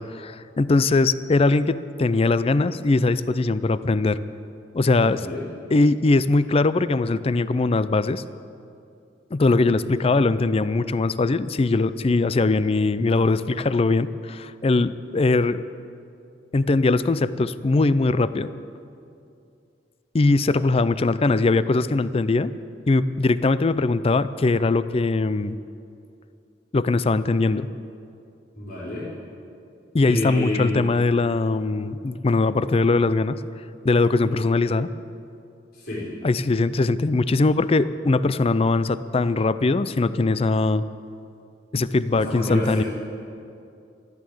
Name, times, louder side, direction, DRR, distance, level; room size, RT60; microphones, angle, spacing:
voice 1, 0.0-4.2 4.7-5.3 5.7-8.2 9.3-15.6 16.5-18.5 20.1-22.5 22.9-25.6 26.7-27.7 29.9-33.4 33.8-34.9 36.2-40.8 41.7-42.8, left 3 dB, 30° left, 15 dB, 0.4 m, -21 dB
voice 2, 4.9-5.4 28.6-29.1 30.0-30.9 35.7-36.1 42.1-42.8, left 1 dB, 55° left, -6 dB, 4.1 m, -29 dB
14.0 x 12.0 x 7.9 m, 2.5 s
head